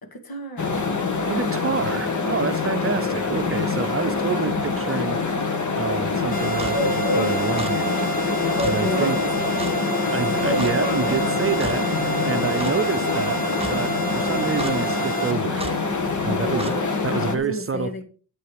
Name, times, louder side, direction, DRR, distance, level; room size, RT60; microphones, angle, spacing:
voice 1, 0.0-0.9 8.8-10.1 11.7-12.8 16.1-18.0, left 2 dB, 80° left, 2.4 m, -34 dB
sound 1, 0.6-17.3, left 4 dB, 55° left, 1.8 m, -24 dB
voice 2, 1.3-5.2 5.8-8.1 8.6-9.2 10.1-11.9 12.3-15.7 16.2-16.7 17.0-18.0, right 5 dB, 40° right, 0.6 m, -28 dB
sound 2, 6.3-15.3, right 5 dB, 25° left, 1.4 m, -30 dB
Clock, 6.6-6.7 7.6-7.7 8.6-8.7 9.6-9.7 10.6-10.7 11.6-11.8 12.6-12.7 13.6-13.7 14.6-14.8 15.6-15.7 16.6-16.7, right 3 dB, 15° right, 0.9 m, -33 dB
9.7 x 8.0 x 5.0 m
wide cardioid pair, 130°, 35 cm